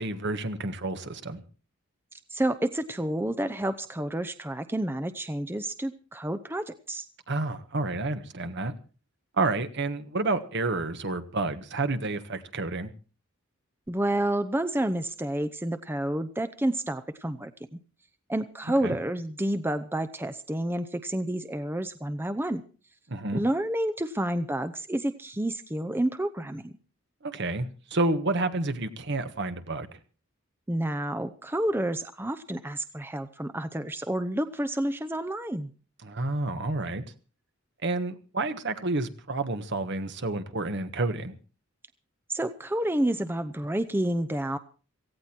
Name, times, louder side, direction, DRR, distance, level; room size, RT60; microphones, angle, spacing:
voice 1, 0.0-1.4 7.3-8.7 9.3-12.9 18.8-18.9 23.1-23.4 27.2-30.0 36.0-37.0 37.8-41.4, right 2 dB, 55° right, 1.4 m, -30 dB
voice 2, 2.3-7.1 13.9-17.8 18.3-22.6 23.3-26.7 30.7-35.7 42.3-44.6, right 1 dB, 10° right, 0.7 m, -29 dB
17.5 x 16.0 x 4.5 m
head